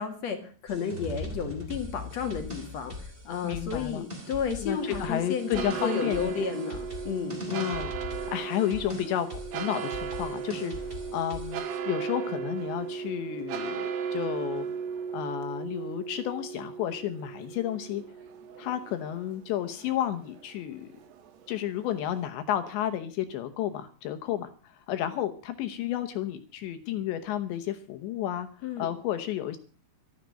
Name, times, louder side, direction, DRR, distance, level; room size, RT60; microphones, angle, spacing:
voice 1, 0.0-6.8 7.0-7.4 28.6-28.9, left 6 dB, 55° left, 6 dB, 1.9 m, -32 dB
sound 1, 0.7-11.8, left 1 dB, 15° right, 2.2 m, -41 dB
voice 2, 3.4-4.0 4.6-6.3 7.5-14.7 15.1-18.0 18.6-20.9 21.5-28.5 28.8-29.6, left 11 dB, 75° left, 9 dB, 3.0 m, -32 dB
sound 2, 4.7-22.3, right 7 dB, 80° right, 4.5 m, -36 dB
13.5 x 13.0 x 6.4 m, 0.39 s
omnidirectional pair, 5.8 m